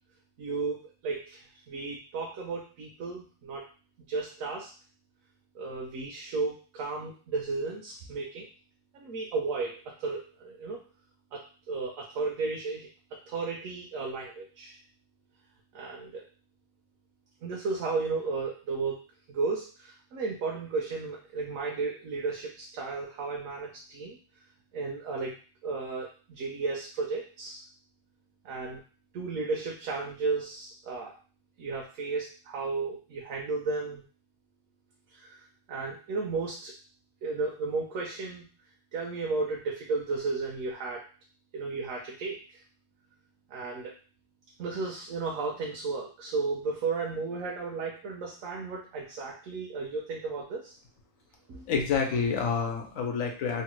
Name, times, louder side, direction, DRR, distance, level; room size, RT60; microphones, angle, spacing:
voice 1, 0.4-3.7 4.1-4.7 5.5-8.5 8.9-10.8 11.3-12.9 13.3-14.8 15.7-16.2 17.4-24.2 24.7-25.3 25.6-27.7 28.4-28.8 29.1-31.1 31.6-34.0 35.1-36.7 37.2-38.5 38.9-41.0 41.5-42.6 43.5-43.9 44.6-50.8 51.5-51.6, right 4 dB, 80° right, -1 dB, 1.0 m, -34 dB
voice 2, 51.7-53.6, left 5 dB, 85° left, 2 dB, 1.1 m, -28 dB
3.1 x 2.1 x 3.0 m, 0.38 s
omnidirectional pair, 1.4 m